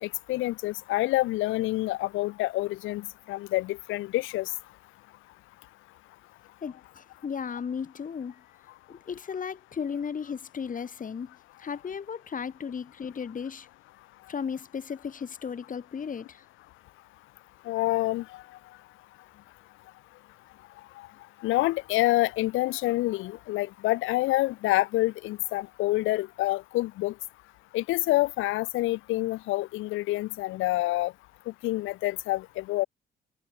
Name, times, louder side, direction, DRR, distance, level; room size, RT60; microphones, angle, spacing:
voice 1, 0.0-4.5 17.7-18.4 21.0-21.1 21.4-27.1 27.7-31.1 31.6-32.9, left 18 dB, 90° left, 0.6 m, -27 dB
voice 2, 6.6-8.4 8.9-13.7 14.3-16.4, left 6 dB, 40° left, 2.4 m, -35 dB
cardioid pair, 90°, 20 cm